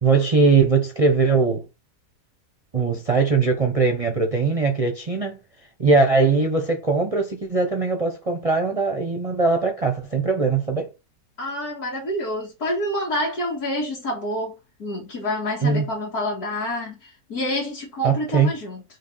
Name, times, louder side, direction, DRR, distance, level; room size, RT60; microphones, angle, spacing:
voice 1, 0.0-1.7 2.7-5.4 5.8-10.9 15.6-15.9 18.0-18.5, right 4 dB, 25° right, 1.1 m, -20 dB
voice 2, 11.4-18.8, left 1 dB, 65° left, 2.6 m, -28 dB
6.3 x 5.3 x 4.1 m
omnidirectional pair, 1.8 m